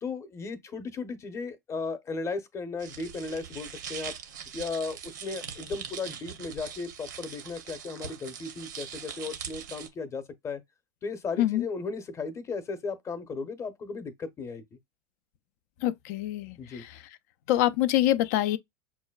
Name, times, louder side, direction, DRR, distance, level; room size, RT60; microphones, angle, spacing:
voice 1, 0.0-4.2 4.5-10.6 11.0-14.8 16.6-16.8, left 4 dB, 30° left, 0.8 m, -36 dB
sound 1, 2.8-9.9, right 8 dB, 75° right, 0.7 m, -41 dB
voice 2, 15.8-16.9 17.5-18.6, left 14 dB, 60° left, 0.4 m, -25 dB
5.9 x 2.2 x 2.2 m
hypercardioid pair, 85°, 10 cm